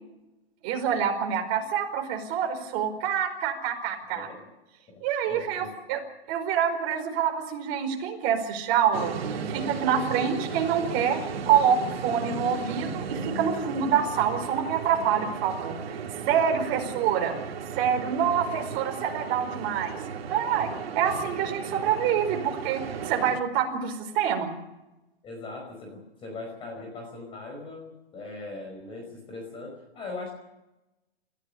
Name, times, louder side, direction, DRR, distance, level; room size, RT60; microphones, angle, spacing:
voice 1, 0.6-4.3 5.0-6.0 6.3-9.1 9.5-16.0 16.3-17.3 17.8-20.0 20.3-24.5, right 8 dB, 30° right, 3 dB, 4.9 m, -26 dB
voice 2, 4.9-5.7 16.6-16.8 25.2-30.3, left 3 dB, 15° left, 1 dB, 5.1 m, -40 dB
sound 1, 8.9-23.4, right 6 dB, 70° right, 2.8 m, -35 dB
28.5 x 16.0 x 6.8 m, 0.97 s
hypercardioid pair, 155°, 32 cm